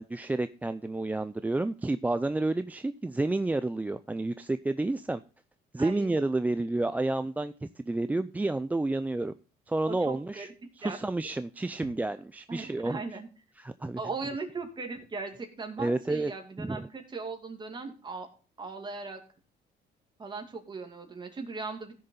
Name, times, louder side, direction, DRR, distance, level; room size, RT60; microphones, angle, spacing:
voice 1, 0.0-5.2 5.7-9.3 9.7-10.5 10.8-13.0 13.6-14.0 15.8-16.3 16.6-16.9, right 2 dB, 10° right, 11 dB, 0.4 m, -30 dB
voice 2, 5.8-6.2 9.9-10.5 10.8-11.0 12.5-13.3 14.0-18.3 18.6-19.2 20.2-21.9, right 4 dB, 25° right, 4 dB, 2.4 m, -38 dB
15.5 x 6.7 x 3.8 m, 0.36 s
cardioid pair, 110°, 17 cm